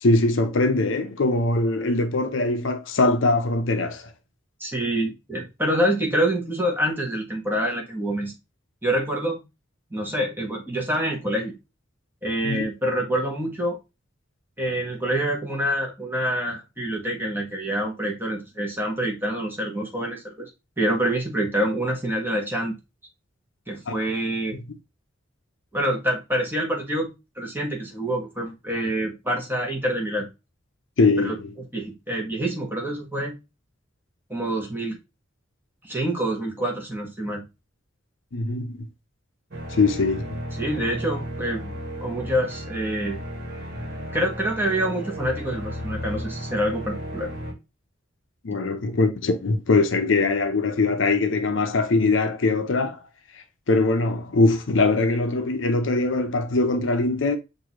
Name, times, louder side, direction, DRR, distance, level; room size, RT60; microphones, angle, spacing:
voice 1, 0.0-4.1 12.4-12.7 23.9-24.0 24.5-24.6 31.0-31.5 38.3-38.9 39.7-40.4 48.4-53.0 53.7-57.4, left 3 dB, 70° left, 0.6 m, -22 dB
voice 2, 4.6-8.3 8.8-9.4 9.9-11.5 12.2-13.8 14.6-20.5 20.8-22.8 23.7-24.6 25.7-27.1 27.4-30.3 31.2-31.3 31.7-33.4 34.3-35.0 35.8-37.4 40.5-43.2 44.1-47.3, right 1 dB, 10° right, 1.3 m, -26 dB
sound 1, 39.5-47.5, equal, 50° right, 1.5 m, -34 dB
6.3 x 2.7 x 3.0 m
head